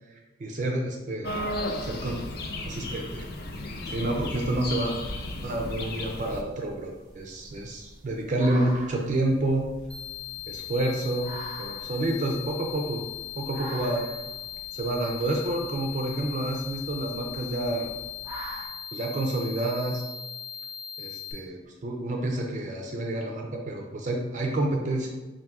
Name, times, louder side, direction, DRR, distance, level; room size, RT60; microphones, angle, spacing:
voice 1, 0.4-1.5 1.8-2.2 2.6-3.3 3.8-4.9 5.4-9.6 10.5-11.3 11.6-13.0 13.4-14.1 14.7-17.9 18.9-20.0 21.0-25.1, right 1 dB, 40° right, 1 dB, 0.4 m, -29 dB
sound 1, 1.2-6.4, left 1 dB, 50° left, 0.4 m, -34 dB
sound 2, 4.7-18.7, equal, 15° right, 0.8 m, -45 dB
sound 3, 9.9-21.3, left 10 dB, 65° left, 1.2 m, -39 dB
4.0 x 2.6 x 3.5 m, 1.2 s
head